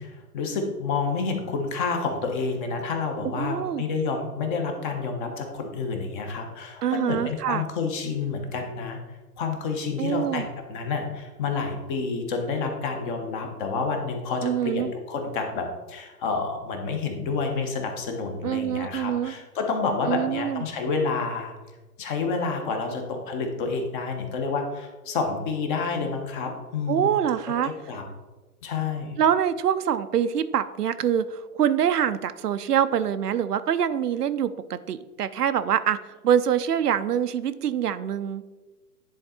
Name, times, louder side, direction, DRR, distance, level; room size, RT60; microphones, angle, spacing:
voice 1, 0.0-9.0 9.4-21.5 22.0-27.1 27.6-28.0 28.6-29.2, left 4 dB, 30° left, 4 dB, 1.2 m, -29 dB
voice 2, 3.3-3.8 6.8-7.6 10.0-10.5 14.4-14.9 18.4-19.3 20.1-20.6 26.9-27.7 29.2-38.4, right 9 dB, 80° right, 12 dB, 0.6 m, -25 dB
10.0 x 3.9 x 4.3 m, 1.2 s
hypercardioid pair, 135°, 47 cm